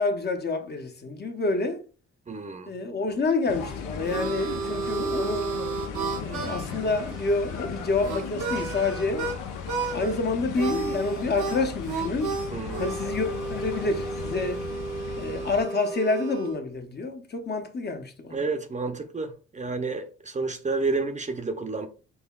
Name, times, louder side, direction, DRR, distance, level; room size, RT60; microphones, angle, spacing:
voice 1, 0.0-1.8 2.7-5.6 6.2-9.3 9.9-12.4 12.8-14.6 15.2-18.4, left 3 dB, 35° left, 0.6 m, -28 dB
voice 2, 2.3-2.7 12.5-13.0 18.3-21.9, right 3 dB, 25° right, 0.6 m, -30 dB
sound 1, 3.5-15.6, left 7 dB, 90° left, 0.7 m, -37 dB
Harmonica, 3.6-9.4 9.7-10.2 10.6-16.6, right 5 dB, 80° right, 0.8 m, -32 dB
5.4 x 2.2 x 2.3 m
cardioid pair, 90°, 30 cm